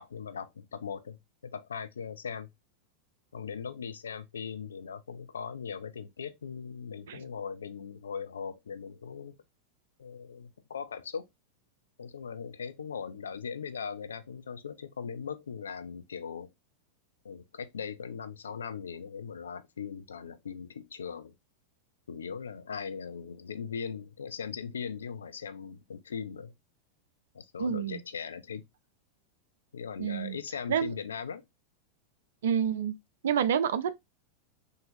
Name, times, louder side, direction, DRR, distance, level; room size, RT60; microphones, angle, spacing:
voice 1, 0.0-2.5 3.3-9.4 10.0-11.3 12.0-16.5 17.2-21.3 22.1-26.5 27.3-28.6 29.7-31.4, left 6 dB, 70° left, 0.4 m, -39 dB
voice 2, 27.6-28.0 30.0-30.4 30.7-30.9 32.4-32.9 33.2-33.9, right 8 dB, 60° right, 0.4 m, -28 dB
3.7 x 2.7 x 2.5 m
figure-of-eight pair, 90°, 0 cm